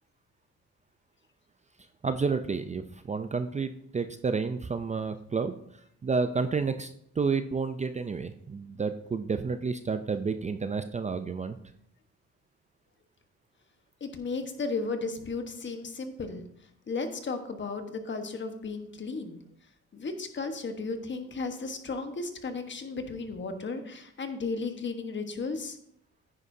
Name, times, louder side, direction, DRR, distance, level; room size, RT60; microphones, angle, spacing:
voice 1, 2.0-5.6 6.0-11.6, right 4 dB, 25° right, 9 dB, 0.5 m, -30 dB
voice 2, 14.0-16.4 16.9-19.4 19.9-25.8, left 4 dB, 40° left, 7 dB, 1.3 m, -34 dB
9.7 x 9.6 x 2.7 m, 0.72 s
cardioid pair, 90°, 30 cm